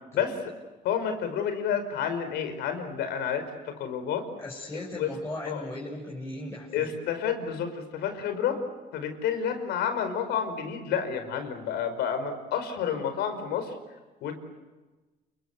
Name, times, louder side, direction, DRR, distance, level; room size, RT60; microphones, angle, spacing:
voice 1, 0.8-4.3 5.0-5.1 5.5-5.6 6.7-8.6 8.9-13.7 14.2-14.4, left 8 dB, 85° left, 8 dB, 5.1 m, -30 dB
voice 2, 4.4-6.9, left 1 dB, 15° left, -4 dB, 6.5 m, -37 dB
29.5 x 23.5 x 8.3 m, 1.2 s
cardioid pair, 110°, 17 cm